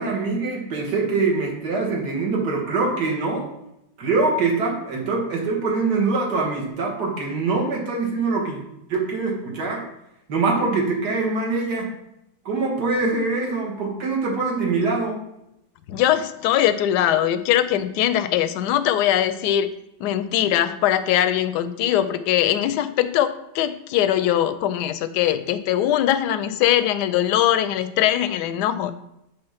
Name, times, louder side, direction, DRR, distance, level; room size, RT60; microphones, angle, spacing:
voice 1, 0.0-3.5 4.0-8.6 8.9-9.8 10.3-11.9 12.5-15.2, right 3 dB, 65° right, -1 dB, 2.1 m, -23 dB
voice 2, 15.9-19.7 20.0-28.9, left 11 dB, 75° left, 12 dB, 1.1 m, -21 dB
6.8 x 3.5 x 5.6 m, 0.82 s
omnidirectional pair, 1.9 m